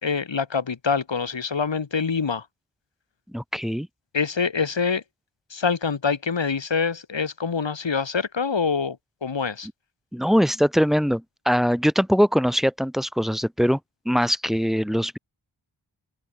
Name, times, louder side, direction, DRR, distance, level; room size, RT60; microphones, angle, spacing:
voice 1, 0.0-2.4 4.1-5.0 5.5-9.7, left 5 dB, 65° left, 1.6 m, -25 dB
voice 2, 3.3-3.9 10.1-13.8 14.0-15.2, equal, ahead, 1.3 m, -22 dB
open air
wide cardioid pair, 50°, 48 cm